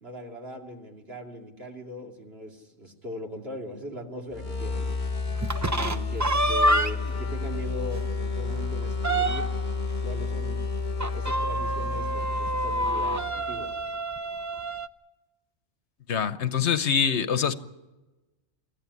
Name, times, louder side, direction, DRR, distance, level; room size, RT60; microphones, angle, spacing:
voice 1, 0.0-5.0 5.7-9.5 10.0-10.6 11.1-13.7, equal, 60° right, 1 dB, 3.0 m, -40 dB
sound 1, 4.3-13.8, left 4 dB, 40° left, 1.3 m, -31 dB
sound 2, 5.4-7.2 7.6-7.7 8.1-8.2 8.5-9.7 11.0-14.9, right 1 dB, 20° right, 0.5 m, -27 dB
voice 2, 16.1-17.5, left 7 dB, 70° left, 12 dB, 1.2 m, -24 dB
25.0 x 14.5 x 9.7 m, 1.1 s
omnidirectional pair, 1.2 m